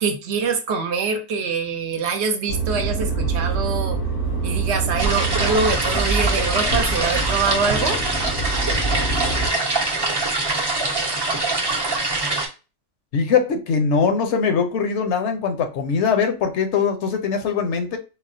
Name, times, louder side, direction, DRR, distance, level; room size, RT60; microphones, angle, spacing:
voice 1, 0.0-4.0 4.4-8.0, right 5 dB, 70° right, 0.9 m, -24 dB
sound 1, 2.5-9.5, right 3 dB, 90° left, 1.6 m, -25 dB
sound 2, 5.0-12.5, right 2 dB, 30° right, 0.5 m, -23 dB
voice 2, 13.1-18.0, left 5 dB, 75° left, 0.9 m, -21 dB
4.1 x 2.1 x 2.5 m
omnidirectional pair, 1.2 m